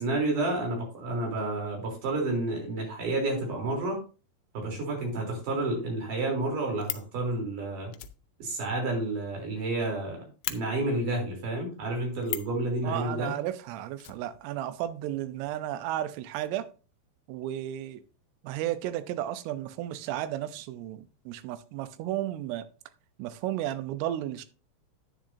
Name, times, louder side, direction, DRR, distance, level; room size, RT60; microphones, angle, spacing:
voice 1, 0.0-4.0 4.5-7.9 8.4-13.3, right 2 dB, 45° right, 4.6 m, -30 dB
Fire, 6.4-7.1 7.9-9.7 10.0-10.1 10.4-10.6 12.2-12.6 14.0-14.9 15.1-15.2 15.5-15.6, left 15 dB, 80° left, 2.7 m, -37 dB
voice 2, 12.8-16.7 17.3-18.0 18.4-22.7 23.2-24.5, right 12 dB, 80° right, 3.3 m, -33 dB
10.5 x 9.3 x 2.7 m
omnidirectional pair, 5.8 m